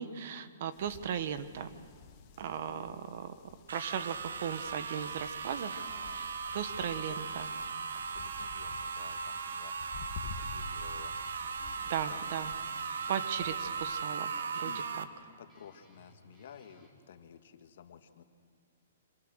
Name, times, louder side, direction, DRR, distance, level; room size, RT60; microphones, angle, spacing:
voice 1, 0.0-1.7 2.4-3.3 3.7-5.8 6.1-6.3 6.5-7.5 11.9-12.5 13.1-14.7 15.0-15.1, right 8 dB, 50° right, 11 dB, 1.5 m, -37 dB
sound 1, 0.7-14.0, left 4 dB, 30° left, 2.0 m, -51 dB
sound 2, 3.7-15.0, right 5 dB, 85° right, 1.5 m, -38 dB
voice 2, 5.8-7.4 8.0-9.7 10.3-11.2 12.1-12.3 14.6-15.0 15.4-18.2, left 8 dB, 65° left, 7 dB, 1.8 m, -53 dB
Guitar, 11.2-17.0, equal, 10° right, 3.6 m, -62 dB
27.0 x 25.0 x 6.4 m, 2.2 s
hypercardioid pair, 155°, 0 cm